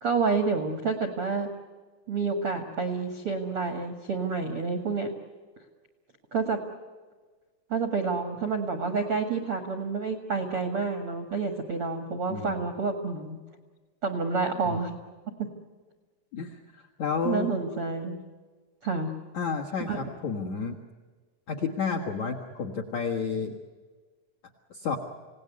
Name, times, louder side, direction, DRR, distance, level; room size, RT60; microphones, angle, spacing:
voice 1, 0.0-1.5 2.1-5.1 6.3-6.6 7.7-13.4 14.0-14.9 15.4-15.5 17.2-18.2 18.8-19.1 19.9-20.0, right 4 dB, 70° right, 6 dB, 1.3 m, -29 dB
voice 2, 12.3-12.7 14.7-14.8 16.3-17.5 19.3-20.8 21.5-23.5 24.7-25.0, left 5 dB, 65° left, 7 dB, 1.7 m, -31 dB
28.0 x 18.0 x 9.6 m, 1.4 s
omnidirectional pair, 5.8 m